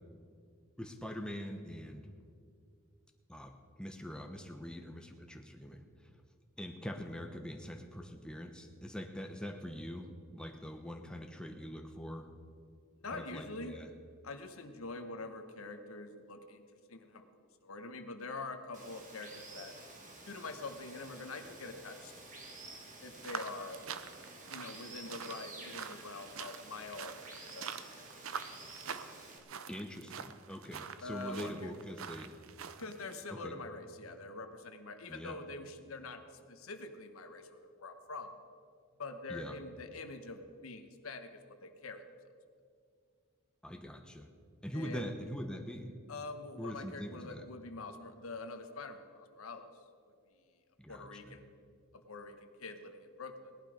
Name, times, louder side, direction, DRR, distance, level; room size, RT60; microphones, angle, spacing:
voice 1, 0.8-2.1 3.3-5.8 6.6-12.3 13.0-13.9 29.7-32.4 33.3-33.6 35.1-35.4 39.3-39.6 43.6-44.3 44.6-46.0 46.6-47.4 50.8-51.4, equal, 5° left, 4 dB, 0.9 m, -43 dB
voice 2, 13.0-13.8 14.2-16.6 16.9-19.7 20.3-22.1 23.0-23.8 24.5-27.8 31.0-31.7 32.8-36.2 36.5-38.4 39.0-42.0 44.7-45.1 46.1-49.7 50.9-51.5 52.1-53.5, left 3 dB, 90° left, 7 dB, 1.1 m, -45 dB
Water, 18.7-29.4, right 2 dB, 40° right, 2.1 m, -51 dB
sound 1, 23.2-33.2, right 7 dB, 75° right, 0.7 m, -46 dB
18.0 x 11.0 x 5.1 m, 2.2 s
head